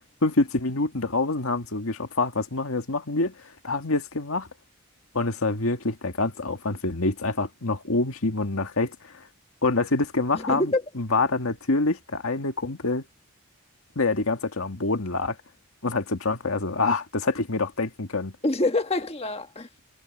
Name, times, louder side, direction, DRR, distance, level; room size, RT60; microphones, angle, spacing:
voice 1, 0.2-3.3 3.6-4.5 5.1-9.2 9.6-13.0 14.0-15.4 15.8-18.3, left 3 dB, 80° left, 1.9 m, -26 dB
voice 2, 10.3-10.8 18.4-19.8, left 2 dB, 25° left, 1.4 m, -26 dB
head